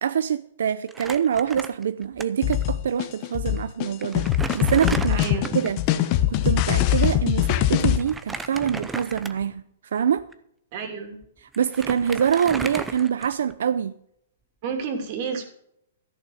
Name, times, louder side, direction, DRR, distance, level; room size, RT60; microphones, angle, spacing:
voice 1, 0.0-4.3 4.5-5.2 5.5-10.3 11.4-13.9, right 8 dB, 75° right, 0.6 m, -25 dB
Crumpling crinkling, 0.9-2.2 2.5-2.6 3.5-3.6 4.0-5.8 8.0-9.6 10.2-10.3 11.2-11.3 11.5-13.6, right 3 dB, 5° right, 0.6 m, -34 dB
sound 1, 2.4-8.0, left 12 dB, 30° left, 0.9 m, -22 dB
voice 2, 5.1-5.5 10.7-11.2 14.6-15.4, right 5 dB, 35° right, 2.7 m, -30 dB
14.0 x 6.4 x 7.0 m
hypercardioid pair, 165°, 0 cm